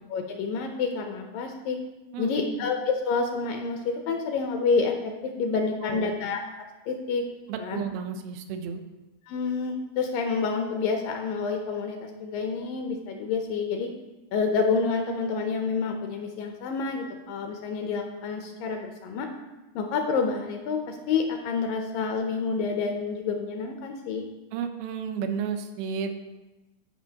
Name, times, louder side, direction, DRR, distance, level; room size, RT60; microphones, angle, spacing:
voice 1, 0.1-1.8 2.2-6.4 6.9-7.2 7.6-7.8 9.3-13.9 14.3-19.3 19.8-24.2, left 4 dB, 80° left, 4 dB, 2.2 m, -28 dB
voice 2, 2.1-2.7 5.8-6.1 7.5-8.8 24.5-26.1, right 6 dB, 90° right, 6 dB, 2.6 m, -32 dB
14.5 x 5.2 x 2.8 m, 1.1 s
omnidirectional pair, 4.3 m